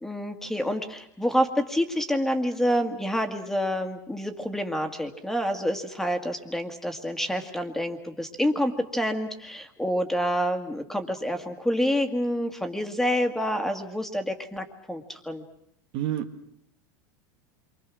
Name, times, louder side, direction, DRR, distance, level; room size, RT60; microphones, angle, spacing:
voice 1, 0.0-15.4, equal, 5° left, 6 dB, 1.9 m, -28 dB
voice 2, 15.9-16.5, right 11 dB, 55° right, 7 dB, 1.7 m, -30 dB
28.5 x 24.5 x 6.3 m, 0.74 s
supercardioid pair, 130°, 10 cm